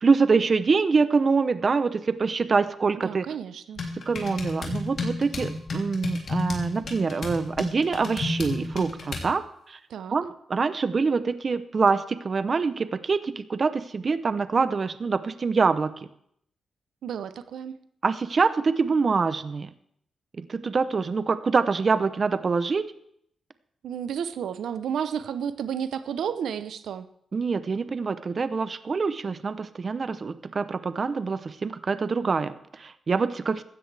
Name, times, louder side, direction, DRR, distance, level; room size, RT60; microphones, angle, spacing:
voice 1, 0.0-3.3 4.1-9.4 9.7-9.8 10.1-16.1 18.0-19.7 20.4-22.8 27.3-33.6, right 4 dB, 40° right, 13 dB, 0.6 m, -25 dB
voice 2, 3.0-3.8 9.9-10.2 17.0-17.8 23.8-27.1, right 8 dB, 85° right, 12 dB, 0.7 m, -32 dB
sound 1, 3.8-9.3, left 3 dB, 60° left, 3.0 m, -32 dB
16.0 x 13.0 x 3.4 m, 0.71 s
cardioid pair, 95°, 0 cm